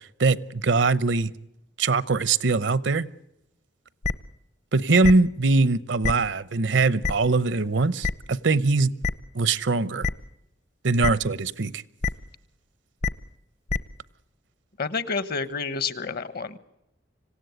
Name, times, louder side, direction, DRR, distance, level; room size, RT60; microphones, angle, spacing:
voice 1, 0.2-1.3 1.8-3.1 4.7-8.9 9.3-10.1 10.8-11.8, right 3 dB, 75° right, 18 dB, 0.8 m, -22 dB
sound 1, 4.0-4.1 5.0-5.1 6.0-6.1 7.0-7.1 8.0-8.1 9.0-9.1 10.0-10.1 11.0-11.1 12.0-12.1 13.0-13.1 13.7-13.8, left 4 dB, 40° left, 0.8 m, -24 dB
voice 2, 14.8-16.6, left 5 dB, 55° left, 15 dB, 1.1 m, -29 dB
26.0 x 16.5 x 8.2 m, 0.86 s
head